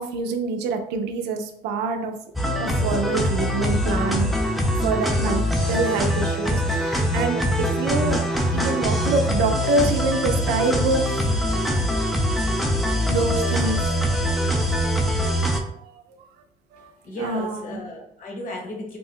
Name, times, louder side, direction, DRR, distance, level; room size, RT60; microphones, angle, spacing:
voice 1, 0.0-2.2 2.6-4.3 4.8-5.4 5.7-8.2 8.5-11.3 13.1-14.0 15.8-16.3 16.7-16.9 17.2-17.8, right 3 dB, 80° right, 6 dB, 0.5 m, -26 dB
sound 1, 2.3-15.6, equal, ahead, 0.4 m, -23 dB
voice 2, 16.8-19.0, left 1 dB, 50° left, 0 dB, 1.0 m, -35 dB
2.5 x 2.1 x 3.6 m, 0.69 s
cardioid pair, 110°, 17 cm